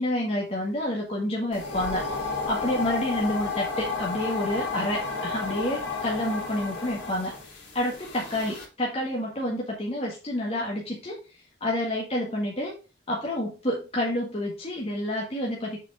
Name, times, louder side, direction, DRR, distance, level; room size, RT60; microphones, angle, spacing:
voice 1, 0.0-11.2 11.6-12.7 13.1-15.8, left 1 dB, 30° left, -3 dB, 1.8 m, -29 dB
sound 1, 1.5-8.6, left 4 dB, 60° left, 3.5 m, -32 dB
6.9 x 5.1 x 4.9 m, 0.32 s
head